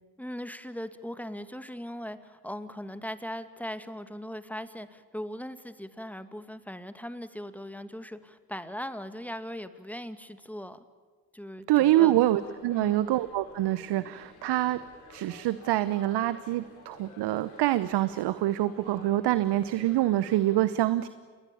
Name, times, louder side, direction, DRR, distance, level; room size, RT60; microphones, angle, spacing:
voice 1, 0.2-10.8 11.3-12.1 12.7-13.0, equal, 5° left, 11 dB, 2.3 m, -39 dB
voice 2, 11.7-14.8 15.1-21.1, right 14 dB, 65° right, 15 dB, 1.0 m, -25 dB
sound 1, 11.8-20.6, left 3 dB, 85° left, 5.0 m, -52 dB
28.5 x 22.0 x 8.7 m, 1.5 s
hypercardioid pair, 50°, 44 cm